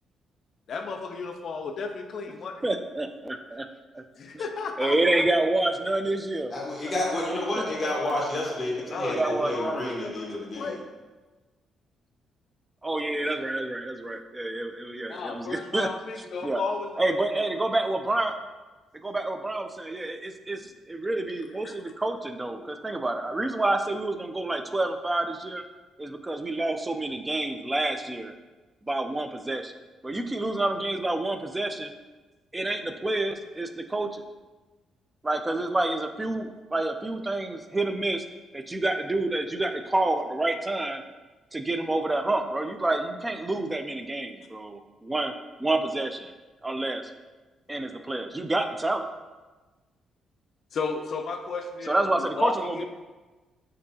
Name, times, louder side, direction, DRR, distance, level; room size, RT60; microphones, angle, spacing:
voice 1, 0.7-2.6 4.2-5.2 8.9-10.8 13.2-13.3 15.1-17.1 21.6-21.8 50.7-52.0 52.4-52.9, left 4 dB, 60° left, 5 dB, 0.4 m, -34 dB
voice 2, 2.6-3.7 4.3-4.5 4.8-6.5 7.6-7.9 8.9-10.0 12.8-15.9 16.4-16.6 17.0-18.3 18.9-25.6 26.0-28.3 28.8-29.7 30.0-31.9 32.5-34.2 35.2-38.2 38.5-41.0 41.5-45.3 45.6-46.3 46.6-47.0 47.7-49.1 51.9-52.8, right 2 dB, 15° right, 7 dB, 0.4 m, -28 dB
voice 3, 6.5-10.8, left 1 dB, 25° left, -4 dB, 1.5 m, -30 dB
6.1 x 2.7 x 2.8 m, 1.2 s
cardioid pair, 90°, 0 cm